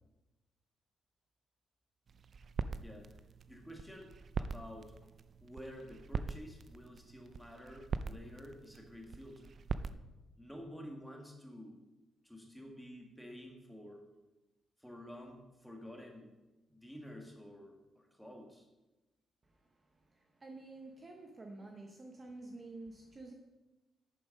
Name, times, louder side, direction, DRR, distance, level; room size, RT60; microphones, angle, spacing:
sound 1, 2.1-9.9, right 5 dB, 45° right, 0.4 m, -43 dB
voice 1, 2.8-3.1 3.5-4.1 4.4-4.9 5.4-9.5 10.4-11.8 12.2-14.0 14.8-16.3 16.7-18.7 21.6-21.7, equal, ahead, 1 dB, 1.8 m, -50 dB
voice 2, 19.4-23.3, right 2 dB, 25° right, 2 dB, 0.9 m, -50 dB
10.0 x 6.8 x 5.3 m, 1.1 s
cardioid pair, 140°, 0 cm